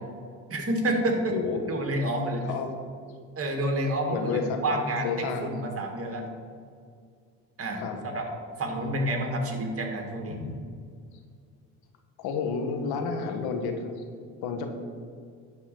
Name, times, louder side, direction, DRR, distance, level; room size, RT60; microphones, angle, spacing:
voice 1, 0.5-1.3 1.7-2.4 3.4-6.2 7.6-7.8 8.1-8.3 8.6-10.4, right 1 dB, 40° right, 3 dB, 2.1 m, -29 dB
voice 2, 1.3-1.6 2.5-2.7 4.1-4.8 5.0-5.5 7.8-8.0 10.4-10.5 12.2-13.9 14.4-14.7, left 5 dB, 75° left, 5 dB, 1.4 m, -30 dB
11.0 x 4.2 x 7.7 m, 2.2 s
supercardioid pair, 90°, 37 cm